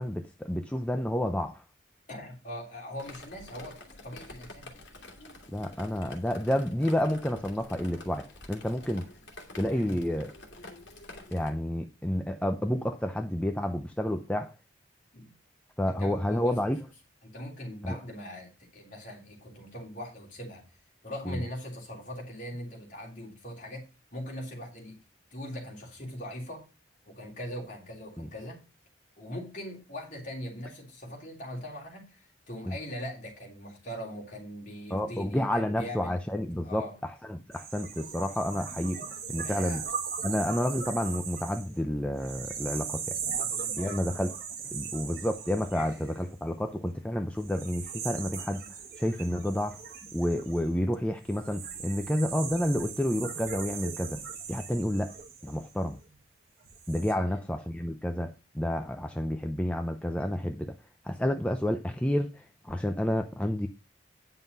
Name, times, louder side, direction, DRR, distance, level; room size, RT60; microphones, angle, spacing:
voice 1, 0.0-1.6 5.5-9.0 9.6-10.3 11.3-14.5 15.8-16.9 17.8-17.9 21.3-21.4 28.2-28.3 32.7-32.8 34.9-36.9 37.3-39.0 39.3-39.8 40.2-43.2 43.8-44.3 44.7-48.6 49.0-49.8 50.1-54.2 54.5-55.1 55.4-56.0 56.9-60.7 61.0-63.7, left 1 dB, 5° left, 0.5 m, -30 dB
voice 2, 2.1-4.8 9.7-10.0 15.1-15.3 15.9-16.7 17.2-20.6 21.0-23.8 24.1-25.0 25.3-26.6 27.0-28.6 29.2-36.1 36.6-37.0 39.4-39.8 43.3-44.0 44.6-44.7 45.7-46.0 57.1-57.4, left 1 dB, 40° left, 3.2 m, -41 dB
Drip, 3.0-11.5, left 2 dB, 65° left, 2.2 m, -48 dB
sound 1, 37.5-46.7 47.4-56.1 56.6-57.1, right 6 dB, 50° right, 1.7 m, -39 dB
9.4 x 5.8 x 5.4 m
head